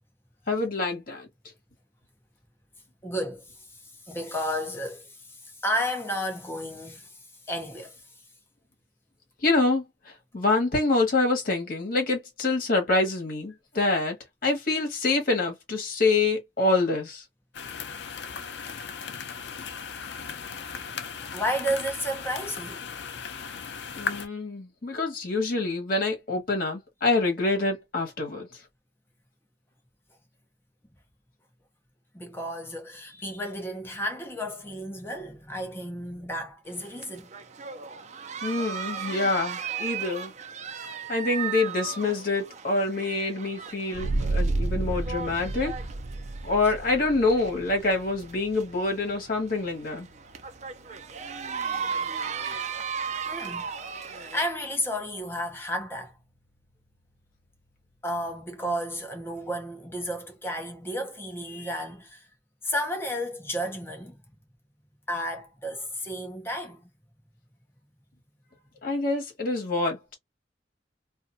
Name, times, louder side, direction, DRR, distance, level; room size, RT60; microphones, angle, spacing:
voice 1, 0.5-1.3 9.4-9.8 10.3-14.2 14.4-17.2 23.9-28.5 38.4-40.3 41.1-45.8 46.4-50.1 68.8-70.1, left 3 dB, 50° left, 1.3 m, -26 dB
voice 2, 3.0-7.2 7.5-8.0 21.3-22.8 32.1-37.3 53.3-53.7 54.1-56.1 58.0-62.3 62.6-64.2 65.1-66.9, equal, 15° left, 0.7 m, -32 dB
sound 1, 17.5-24.3, left 6 dB, 65° left, 0.5 m, -37 dB
sound 2, 36.7-54.5, right 6 dB, 40° right, 0.4 m, -37 dB
sound 3, 43.9-55.2, right 2 dB, 75° right, 0.7 m, -34 dB
2.5 x 2.5 x 2.6 m
head